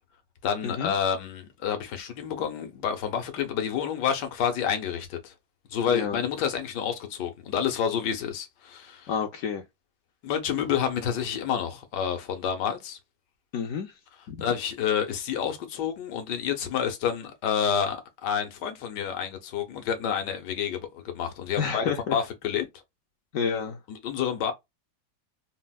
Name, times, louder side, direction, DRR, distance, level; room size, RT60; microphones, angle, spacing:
voice 1, 0.4-5.3 5.7-9.1 10.2-13.0 14.4-21.8 22.1-22.7 23.9-24.5, left 8 dB, 85° left, 1.4 m, -29 dB
voice 2, 5.9-6.2 9.1-9.6 13.5-13.9 14.3-14.5 21.6-22.2 23.3-23.8, left 6 dB, 70° left, 0.8 m, -29 dB
4.2 x 2.1 x 2.2 m
omnidirectional pair, 1.8 m